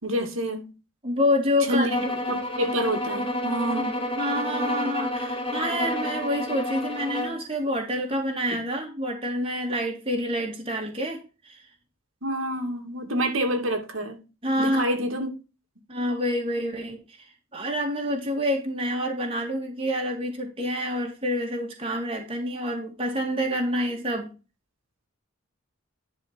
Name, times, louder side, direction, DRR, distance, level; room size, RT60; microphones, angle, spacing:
voice 1, 0.0-0.6 1.7-2.0 2.3-4.0 12.2-14.2 14.6-15.3, right 1 dB, 70° right, 2.4 m, -27 dB
voice 2, 1.0-1.9 3.8-3.9 4.2-11.6 14.4-14.8 15.9-17.3 17.5-24.3, equal, 25° right, 2.3 m, -27 dB
sound 1, 1.9-7.4, left 1 dB, 25° left, 2.2 m, -29 dB
11.0 x 5.0 x 4.5 m
head